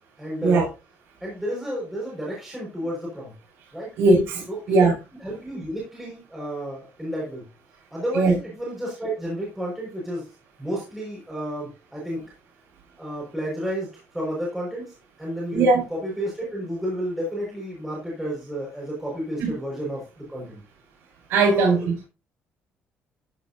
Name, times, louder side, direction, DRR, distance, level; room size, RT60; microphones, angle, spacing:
voice 1, 0.2-0.7 1.2-3.3 3.7-3.9 4.5-4.9 5.2-7.4 7.9-10.3 10.6-12.2 13.0-13.9 14.1-15.6 15.9-20.0 20.3-20.6 21.5-21.8, equal, 5° right, 5.4 m, -31 dB
voice 2, 4.0-4.9 8.1-8.3 15.5-15.8 19.4-19.5 21.3-22.1, right 3 dB, 80° right, 6.0 m, -19 dB
14.5 x 9.5 x 2.7 m
cardioid pair, 165°, 4 cm